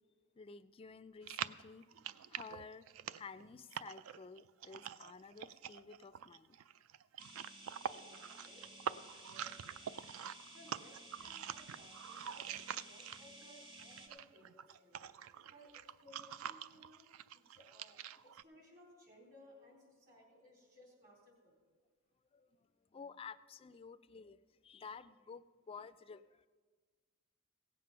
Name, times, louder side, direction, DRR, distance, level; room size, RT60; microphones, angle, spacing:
voice 1, 0.4-1.9 2.3-2.8 3.1-6.6 22.3-24.4 24.6-26.5, left 5 dB, 25° left, 13 dB, 0.3 m, -52 dB
sound 1, 1.2-13.4 13.7-18.4, right 9 dB, 75° right, 0.3 m, -46 dB
sound 2, 7.2-14.1, right 1 dB, 25° right, 1.2 m, -55 dB
voice 2, 7.8-8.7 9.0-9.6 10.3-15.1 15.5-21.6, equal, 45° right, -1 dB, 3.6 m, -62 dB
16.5 x 7.7 x 5.7 m, 1.5 s
head